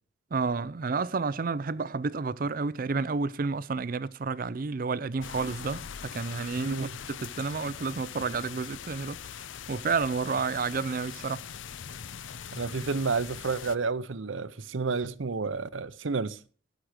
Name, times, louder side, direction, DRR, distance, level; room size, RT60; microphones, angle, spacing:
voice 1, 0.3-5.8 6.1-9.2 9.7-11.4, right 4 dB, 45° right, 0.4 m, -30 dB
sound 1, 5.2-13.8, left 8 dB, 75° left, 0.5 m, -42 dB
voice 2, 6.6-7.0 12.5-16.4, right 4 dB, 80° right, 0.7 m, -30 dB
18.0 x 6.3 x 4.8 m
head